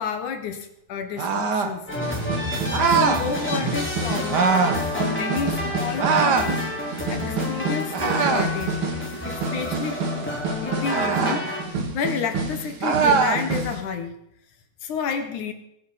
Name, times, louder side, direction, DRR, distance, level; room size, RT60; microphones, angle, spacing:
voice 1, 0.0-1.9 2.9-8.8 9.2-10.0 10.6-11.5 11.9-14.2 14.8-15.5, left 6 dB, 65° left, 8 dB, 2.7 m, -30 dB
sound 1, 1.2-1.3 2.0-13.8, right 3 dB, 45° right, 2.4 m, -30 dB
sound 2, 1.2-1.8 2.7-3.2 4.3-4.8 6.0-6.5 7.9-8.6 10.8-11.4 12.8-13.4, right 5 dB, 65° right, 1.0 m, -21 dB
sound 3, 1.9-11.6, left 1 dB, 5° left, 3.1 m, -30 dB
23.5 x 9.6 x 4.3 m, 0.75 s
omnidirectional pair, 4.0 m